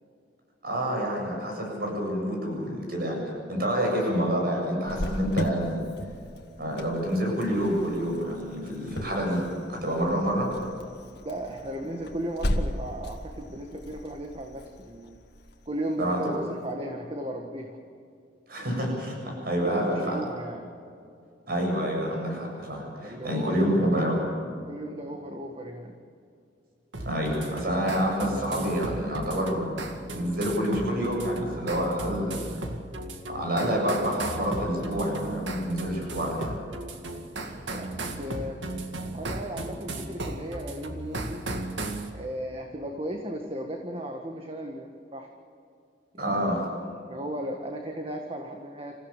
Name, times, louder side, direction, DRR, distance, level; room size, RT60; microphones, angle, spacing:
voice 1, 0.6-3.2 3.5-5.9 6.6-9.4 9.7-10.5 16.0-16.2 18.5-20.2 21.5-24.2 27.1-29.8 30.1-32.4 33.3-36.5 46.2-46.6, equal, 55° right, 0 dB, 7.7 m, -28 dB
Cricket, 4.9-16.3, equal, 60° left, 2.0 m, -36 dB
voice 2, 11.2-15.2 15.6-17.8 18.6-18.7 19.5-20.7 23.0-23.7 24.6-26.0 37.3-38.5 39.1-41.4 42.1-45.3 46.1-46.5 46.9-48.9, right 1 dB, 30° right, 3 dB, 1.7 m, -36 dB
sound 1, 26.9-42.1, right 2 dB, 90° right, 2.1 m, -36 dB
28.5 x 15.5 x 7.5 m, 2.4 s
head